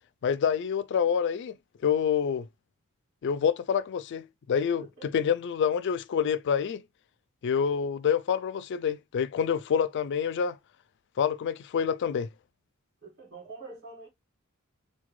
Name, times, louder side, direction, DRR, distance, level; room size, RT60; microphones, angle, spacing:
voice 1, 0.2-1.6 1.8-2.5 3.2-6.8 7.4-10.6 11.2-12.3, left 7 dB, 55° left, 0.3 m, -27 dB
voice 2, 4.8-5.3 13.0-14.1, right 3 dB, 60° right, 1.9 m, -46 dB
3.5 x 2.2 x 3.1 m
head